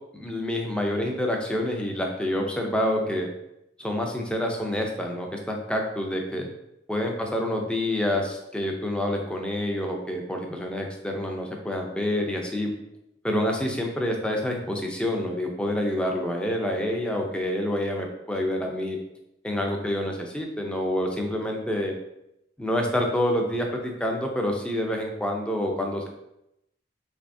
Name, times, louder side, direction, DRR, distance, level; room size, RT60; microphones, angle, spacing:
voice 1, 0.1-3.3 3.8-6.5 6.9-12.7 13.2-19.0 19.4-21.9 22.6-26.1, left 1 dB, 5° left, 1 dB, 0.4 m, -27 dB
3.4 x 3.2 x 2.6 m, 0.85 s
head